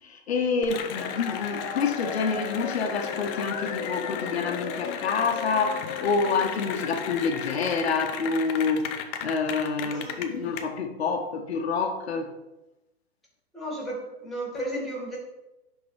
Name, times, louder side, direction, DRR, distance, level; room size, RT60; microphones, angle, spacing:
voice 1, 0.0-8.9 9.2-12.3, left 5 dB, 75° left, 4 dB, 1.1 m, -27 dB
Cheering / Applause, 0.6-10.6, left 8 dB, 20° left, 0.4 m, -33 dB
voice 2, 9.8-10.5 13.5-15.2, right 1 dB, ahead, -4 dB, 2.5 m, -34 dB
10.5 x 3.9 x 3.3 m, 0.98 s
hypercardioid pair, 135°, 32 cm